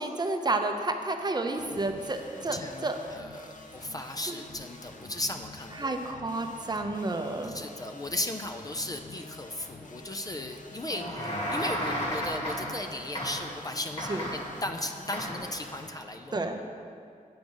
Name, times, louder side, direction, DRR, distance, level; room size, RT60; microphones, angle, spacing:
voice 1, 0.0-3.0 4.3-4.4 5.7-7.5 14.1-14.2 16.3-16.6, right 2 dB, 30° right, 5 dB, 0.6 m, -31 dB
sound 1, 1.6-15.9, left 3 dB, 65° left, 0.8 m, -48 dB
voice 2, 2.5-5.9 7.4-16.6, left 1 dB, 25° left, 5 dB, 0.4 m, -36 dB
sound 2, 10.9-12.9 13.1-13.6 14.0-14.6 15.1-15.5, equal, 45° left, 1.7 m, -33 dB
8.5 x 5.1 x 6.2 m, 2.3 s
wide cardioid pair, 130°, 14 cm